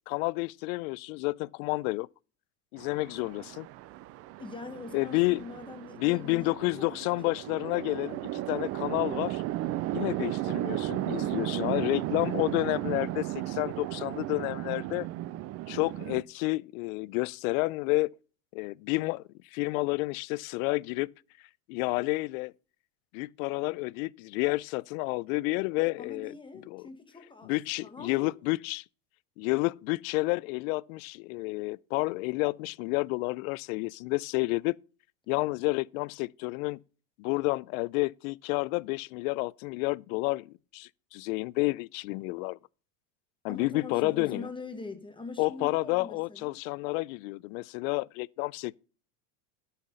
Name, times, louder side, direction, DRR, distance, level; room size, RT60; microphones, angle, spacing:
voice 1, 0.1-2.1 2.7-3.7 4.9-5.4 6.0-9.4 9.9-15.1 15.7-18.1 18.5-19.2 19.5-21.1 21.7-22.5 23.1-26.3 26.7-26.9 27.4-28.8 29.4-34.7 35.3-36.8 37.2-42.6 43.4-44.5 45.4-48.8, left 23 dB, 70° left, 0.5 m, -30 dB
Chatter / Traffic noise roadway noise / Train, 2.8-16.2, right 16 dB, 35° right, 0.4 m, -35 dB
voice 2, 4.4-6.9 7.2-7.4 26.0-27.5 27.8-28.3 43.5-46.6, left 3 dB, 10° left, 1.3 m, -43 dB
11.5 x 5.8 x 5.4 m
supercardioid pair, 135°, 44 cm